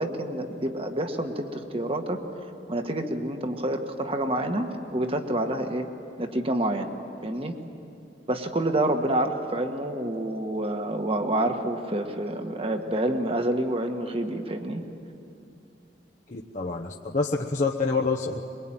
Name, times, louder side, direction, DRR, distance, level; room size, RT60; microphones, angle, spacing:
voice 1, 0.0-2.2 2.7-5.9 6.2-6.9 7.2-7.5 8.3-14.8, right 1 dB, 30° right, 5 dB, 1.6 m, -28 dB
voice 2, 16.3-18.4, left 4 dB, 45° left, -1 dB, 1.0 m, -27 dB
23.0 x 22.5 x 9.0 m, 2.6 s
head